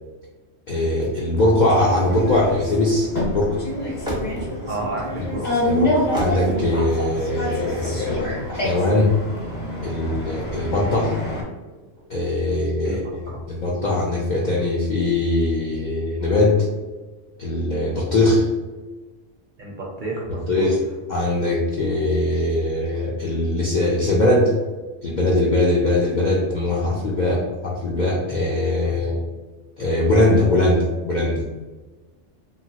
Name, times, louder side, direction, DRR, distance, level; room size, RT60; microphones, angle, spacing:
voice 1, 0.7-3.6 5.2-5.3 5.6-9.1 9.8-11.1 12.1-16.6 17.4-18.5 20.5-20.8 21.1-24.5 25.0-29.2 29.8-31.4, left 1 dB, 65° left, -4 dB, 0.4 m, -21 dB
sound 1, 1.0-13.8, equal, 5° right, 0.4 m, -36 dB
sound 2, 1.7-11.4, left 1 dB, 40° left, 0.8 m, -27 dB
voice 2, 4.7-5.7 12.8-13.0 13.3-13.4 19.6-20.7, right 2 dB, 55° right, -3 dB, 0.6 m, -31 dB
2.9 x 2.3 x 2.7 m, 1.2 s
omnidirectional pair, 1.3 m